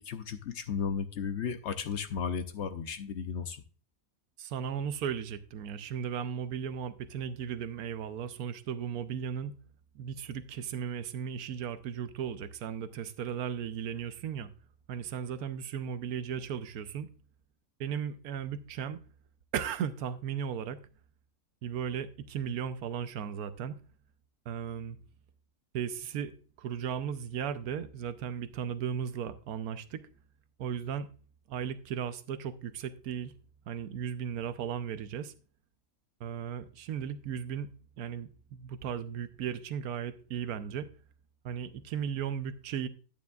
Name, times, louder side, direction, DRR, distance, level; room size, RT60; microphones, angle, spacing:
voice 1, 0.0-3.6, left 6 dB, 60° left, 0.8 m, -34 dB
voice 2, 4.4-9.6 9.9-14.5 14.9-17.1 17.8-19.0 19.5-20.8 21.6-23.7 24.5-25.0 25.7-30.0 30.6-31.1 31.5-33.3 33.7-35.3 36.2-40.9 41.4-42.9, right 8 dB, 75° right, 1.1 m, -36 dB
10.0 x 9.3 x 2.3 m
omnidirectional pair, 1.6 m